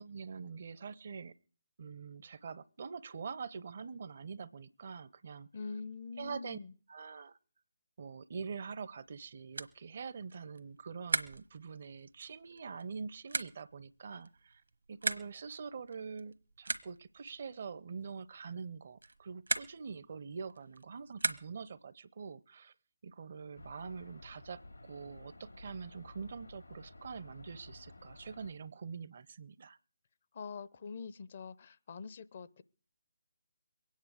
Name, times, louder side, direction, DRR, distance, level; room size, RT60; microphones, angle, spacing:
voice 1, 0.0-1.3 1.8-5.5 6.2-6.6 6.9-7.4 8.0-14.6 14.9-22.7 23.0-29.8, right 5 dB, 45° right, 0.6 m, -45 dB
voice 2, 5.5-6.7 30.3-32.6, left 5 dB, 45° left, 0.6 m, -44 dB
sound 1, 9.0-21.8, right 3 dB, 75° right, 1.1 m, -41 dB
sound 2, 23.5-28.5, left 2 dB, 85° left, 2.5 m, -53 dB
22.5 x 9.3 x 4.8 m
figure-of-eight pair, 145°, 0 cm